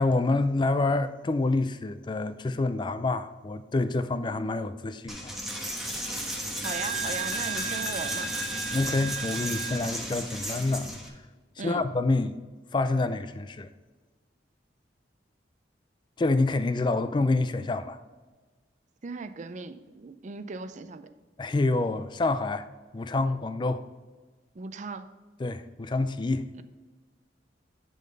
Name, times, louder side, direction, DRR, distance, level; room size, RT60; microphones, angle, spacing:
voice 1, 0.0-5.3 8.7-10.9 11.6-12.4 12.7-13.7 16.2-18.0 21.4-22.7 22.9-23.8 25.4-26.5, left 2 dB, 25° left, 0.4 m, -27 dB
Coin (dropping), 5.1-11.1, right 2 dB, ahead, 1.1 m, -33 dB
voice 2, 6.6-8.3 11.6-11.9 19.0-21.1 24.5-25.1 26.5-26.6, right 4 dB, 40° right, 0.5 m, -38 dB
11.0 x 3.9 x 5.3 m
head